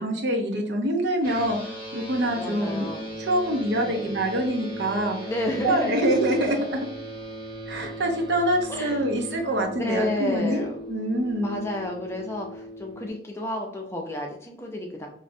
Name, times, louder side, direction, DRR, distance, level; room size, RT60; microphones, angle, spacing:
voice 1, 0.0-2.9 3.2-5.3 5.6-6.8 7.7-11.6, right 1 dB, 75° right, 2 dB, 0.6 m, -25 dB
sound 1, 1.2-13.1, right 1 dB, 20° right, 1.4 m, -38 dB
voice 2, 2.4-3.1 3.8-4.1 5.2-6.0 8.7-9.0 9.8-10.8 11.4-15.1, left 1 dB, 15° left, 1 dB, 0.4 m, -31 dB
3.1 x 2.5 x 2.6 m, 0.64 s
head